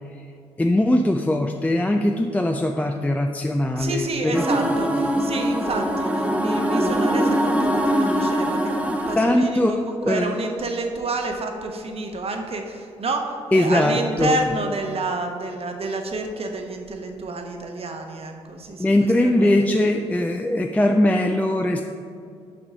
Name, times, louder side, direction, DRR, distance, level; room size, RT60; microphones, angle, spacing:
voice 1, 0.6-4.4 5.0-5.1 9.2-10.5 13.5-14.5 18.8-21.8, left 1 dB, 10° left, 4 dB, 0.4 m, -21 dB
voice 2, 3.7-19.6, right 2 dB, 45° right, 4 dB, 1.1 m, -29 dB
sound 1, 4.3-9.2, equal, 10° right, 1.1 m, -22 dB
5.9 x 5.3 x 5.0 m, 2.4 s
hypercardioid pair, 45°, 14 cm